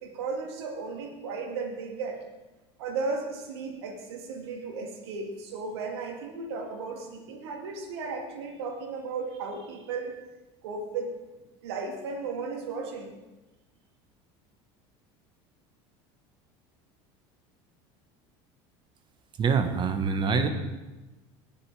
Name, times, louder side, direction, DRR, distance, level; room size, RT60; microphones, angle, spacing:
voice 1, 0.0-2.2 2.8-10.1 10.6-11.1 11.6-13.2, right 4 dB, 85° right, 2 dB, 2.3 m, -35 dB
voice 2, 19.4-20.5, right 5 dB, 35° right, 8 dB, 1.4 m, -25 dB
18.5 x 6.8 x 4.9 m, 1.1 s
supercardioid pair, 100°, 13 cm